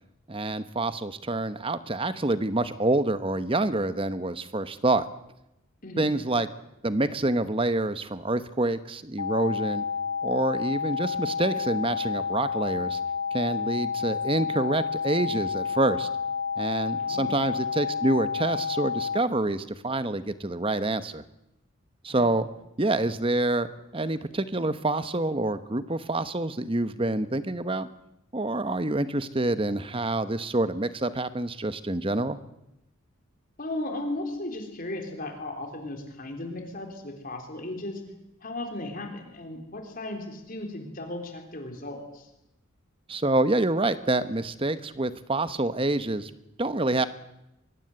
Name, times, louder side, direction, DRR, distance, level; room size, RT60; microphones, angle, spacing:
voice 1, 0.3-5.1 6.0-6.5 6.8-9.8 10.2-13.0 13.3-16.1 16.6-21.2 22.0-22.5 22.8-23.7 23.9-27.9 28.3-32.4 43.1-46.3 46.6-47.1, right 2 dB, 25° right, 12 dB, 1.0 m, -27 dB
sound 1, 9.2-19.2, left 6 dB, 75° left, 1.1 m, -30 dB
voice 2, 17.0-17.4 22.1-22.3 33.6-38.0 38.4-42.3, left 1 dB, 40° left, 4 dB, 3.8 m, -36 dB
23.0 x 22.5 x 7.9 m, 0.89 s
head